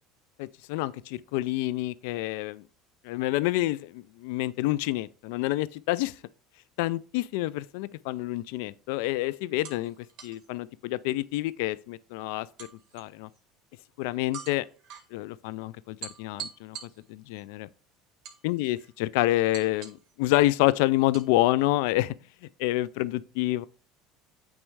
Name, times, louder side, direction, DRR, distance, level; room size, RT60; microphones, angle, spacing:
voice 1, 0.4-2.6 3.0-6.1 6.8-9.9 10.2-12.5 12.9-13.3 14.0-14.6 15.1-17.7 18.4-22.1 22.6-23.7, left 17 dB, 80° left, 0.3 m, -28 dB
sound 1, 8.3-8.6 9.6-10.5 12.6-13.4 14.3-15.1 16.0-17.4 18.2-18.9 19.5-20.1 21.1-21.3, right 8 dB, 55° right, 1.7 m, -44 dB
8.8 x 3.1 x 4.6 m
supercardioid pair, 110°, 0 cm